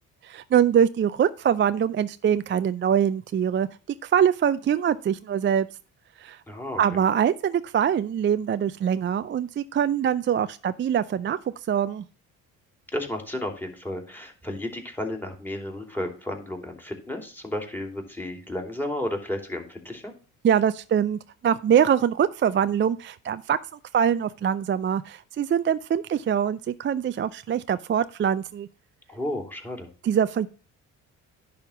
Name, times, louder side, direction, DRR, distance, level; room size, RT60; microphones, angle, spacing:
voice 1, 0.2-3.7 4.0-5.7 6.2-6.4 6.8-11.4 11.7-12.0 20.4-23.6 23.9-28.7 30.0-30.5, right 8 dB, 30° right, 13 dB, 0.4 m, -23 dB
voice 2, 6.5-7.0 12.9-20.1 29.1-29.9, left 1 dB, 5° left, 4 dB, 2.9 m, -33 dB
10.5 x 3.6 x 7.1 m, 0.37 s
hypercardioid pair, 55°, 40 cm